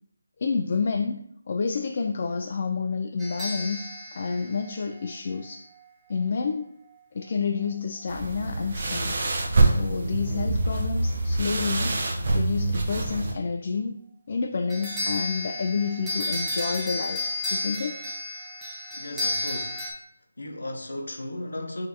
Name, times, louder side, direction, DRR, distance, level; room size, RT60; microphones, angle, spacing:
voice 1, 0.4-1.2 1.5-5.7 6.1-6.7 7.1-9.2 9.6-14.0 14.3-17.2 17.5-18.1, left 5 dB, 45° left, 0.3 m, -29 dB
sound 1, 3.2-5.4 14.7-19.9, left 2 dB, 5° right, 0.8 m, -32 dB
sound 2, 8.1-13.3, right 2 dB, 50° right, 0.8 m, -25 dB
voice 2, 18.9-19.9 20.4-21.9, left 1 dB, 80° left, 0.8 m, -35 dB
6.3 x 2.7 x 2.7 m
figure-of-eight pair, 160°, 0 cm